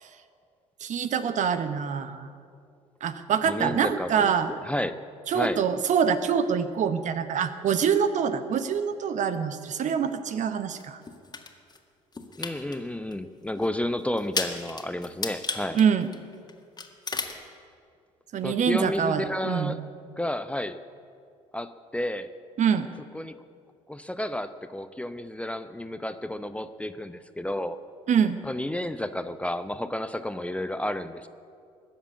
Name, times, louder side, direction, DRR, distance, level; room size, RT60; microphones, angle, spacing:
voice 1, 0.8-2.3 3.0-4.5 5.3-11.0 15.7-16.1 18.3-19.8 22.6-22.9 28.1-28.4, right 7 dB, 45° right, 11 dB, 1.0 m, -25 dB
voice 2, 3.4-4.3 4.6-5.0 5.3-5.6 12.4-15.8 18.4-19.8 20.2-20.8 21.5-22.3 23.1-23.4 23.9-27.8 28.4-31.3, left 1 dB, 5° left, 11 dB, 0.7 m, -31 dB
sound 1, 10.8-11.8 12.1-12.8 13.1-13.2 13.6-13.7 14.2-16.5 16.8-17.4, left 4 dB, 25° left, 1.8 m, -33 dB
20.5 x 7.4 x 8.4 m, 2.3 s
figure-of-eight pair, 50°, 17 cm